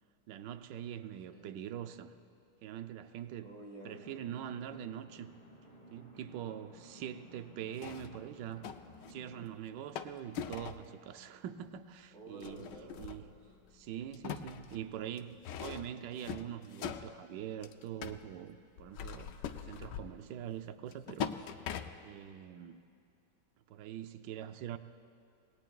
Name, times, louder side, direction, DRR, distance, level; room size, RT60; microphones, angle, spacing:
voice 1, 0.3-2.1 2.6-3.5 3.8-5.3 5.9-8.7 9.1-12.7 13.0-13.3 13.7-21.3 22.0-22.8 23.7-24.8, right 10 dB, 80° right, 9 dB, 1.3 m, -43 dB
voice 2, 3.4-4.2 12.1-13.6 21.0-21.7, right 1 dB, 40° right, -3 dB, 3.0 m, -52 dB
sound 1, 3.9-9.5, equal, 20° left, 1.6 m, -56 dB
sound 2, 7.8-9.2 10.0-10.9 11.6-11.7 12.4-13.7 14.0-18.3 18.8-20.3 20.9-22.2, left 8 dB, 80° left, 1.3 m, -42 dB
27.0 x 19.5 x 2.3 m, 2.5 s
omnidirectional pair, 1.9 m